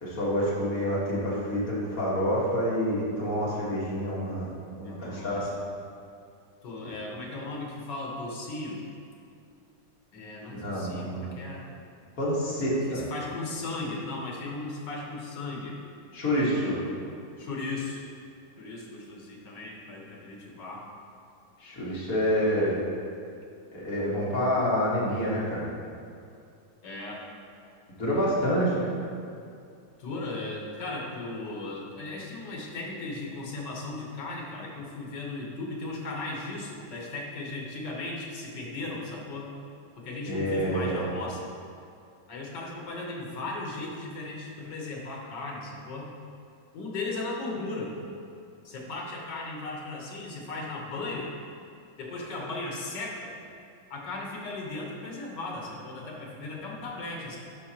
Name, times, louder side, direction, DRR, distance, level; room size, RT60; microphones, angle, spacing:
voice 1, 0.0-4.5 4.8-5.5 10.5-11.3 12.2-13.0 16.1-16.8 21.6-22.8 23.7-25.7 28.0-28.9 40.3-41.1, equal, 50° left, -6 dB, 1.9 m, -27 dB
voice 2, 4.8-5.5 6.6-8.8 10.1-11.6 12.9-15.8 16.7-17.1 17.4-18.0 18.6-20.9 26.8-27.2 30.0-39.5 40.0-41.5 42.3-46.1 46.7-47.9 48.6-51.3 52.0-53.3 53.9-57.4, left 2 dB, 70° left, -2 dB, 1.8 m, -36 dB
11.0 x 5.1 x 2.9 m, 2.5 s
omnidirectional pair, 2.0 m